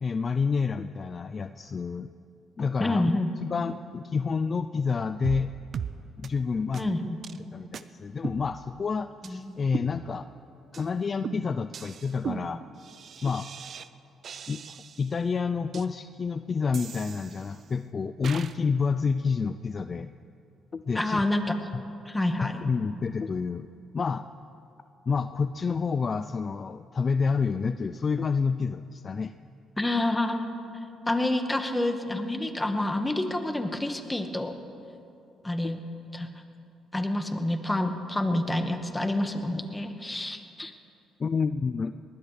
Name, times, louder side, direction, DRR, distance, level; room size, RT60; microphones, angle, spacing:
voice 1, 0.0-2.1 2.6-3.1 3.5-5.5 6.2-7.0 7.5-10.3 10.7-12.6 13.2-13.5 14.5-20.1 20.7-21.2 21.7-21.8 22.4-23.7 23.9-24.3 25.1-29.3 35.6-35.7 41.2-41.9, left 5 dB, 40° left, 11 dB, 0.4 m, -29 dB
voice 2, 2.8-3.3 6.8-7.2 9.2-9.5 20.9-21.6 22.0-22.6 29.8-30.5 31.1-34.6 35.4-35.8 36.1-36.3 36.9-40.7, left 1 dB, 15° left, 6 dB, 1.5 m, -28 dB
sound 1, 5.2-5.5 5.7-5.9 6.2-6.3 6.7-6.8 7.2-7.4 7.7-7.8 8.2-8.9 9.2-9.3 9.7-10.4 10.7-10.9 11.2-13.9 14.2-15.1 15.7-15.8 16.7-17.7 18.2-18.6, right 7 dB, 55° right, 0.6 m, -38 dB
20.5 x 19.0 x 3.3 m, 2.7 s
supercardioid pair, 75°, 0 cm